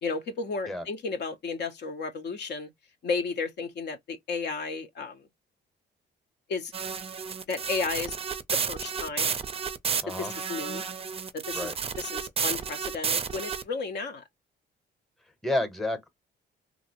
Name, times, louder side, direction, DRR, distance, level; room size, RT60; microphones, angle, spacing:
voice 1, 0.0-2.7 3.0-5.3 6.5-6.7 7.5-8.2 8.5-9.3 10.2-10.8 11.3-14.2, left 4 dB, 60° left, 0.7 m, -33 dB
sound 1, 6.7-13.6, right 6 dB, 30° right, 0.4 m, -31 dB
voice 2, 10.0-10.3 11.5-11.7 15.4-16.1, left 1 dB, ahead, 0.8 m, -30 dB
2.9 x 2.5 x 2.8 m
cardioid pair, 90°, 20 cm